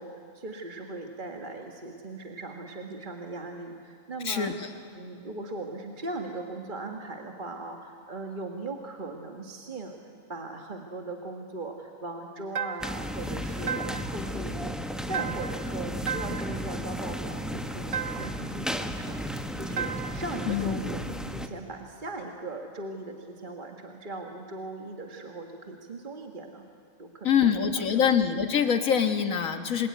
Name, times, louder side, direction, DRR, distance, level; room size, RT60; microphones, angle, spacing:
voice 1, 0.0-4.5 4.9-9.9 10.3-19.3 19.6-21.0 21.3-26.7 27.0-28.1, right 2 dB, 40° right, 3 dB, 1.6 m, -39 dB
sound 1, 12.6-13.1 13.7-14.2 15.1-15.7 16.1-16.6 17.9-18.5 19.8-20.3, right 8 dB, 65° right, 1.2 m, -34 dB
sound 2, 12.8-21.5, equal, ahead, 1.0 m, -34 dB
voice 2, 20.5-20.8 27.2-29.9, left 7 dB, 85° left, 7 dB, 1.9 m, -24 dB
28.0 x 20.5 x 9.4 m, 2.2 s
omnidirectional pair, 1.4 m